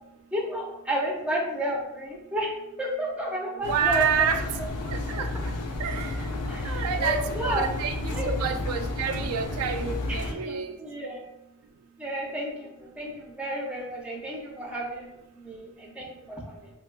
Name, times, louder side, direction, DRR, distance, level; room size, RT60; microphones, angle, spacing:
voice 1, 0.3-4.3 4.6-4.7 6.5-7.6 8.1-8.3 10.0-11.2 12.0-16.7, right 1 dB, 5° right, -3 dB, 0.5 m, -32 dB
voice 2, 3.5-4.4 4.9-5.3 5.8-6.3 6.6-10.8, right 7 dB, 80° right, 6 dB, 0.3 m, -29 dB
Engine, 3.6-10.3, left 2 dB, 90° left, 0.4 m, -32 dB
3.5 x 2.2 x 2.2 m, 0.89 s
head